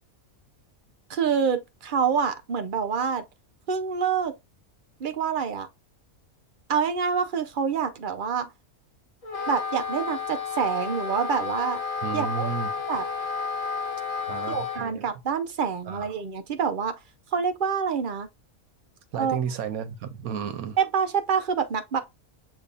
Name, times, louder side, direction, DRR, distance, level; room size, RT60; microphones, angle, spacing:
voice 1, 1.1-3.2 3.7-4.3 5.0-5.7 6.7-8.5 9.5-11.8 12.1-12.5 12.9-13.0 14.5-16.9 17.3-18.3 19.2-19.4 20.8-22.0, right 6 dB, 50° right, 0.6 m, -26 dB
Wind instrument woodwind instrument, 9.2-14.9, left 5 dB, 30° left, 0.8 m, -31 dB
voice 2, 12.0-12.8 14.2-15.0 15.8-16.1 19.1-20.8, right 7 dB, 85° right, 1.2 m, -32 dB
6.7 x 3.1 x 2.4 m
omnidirectional pair, 1.5 m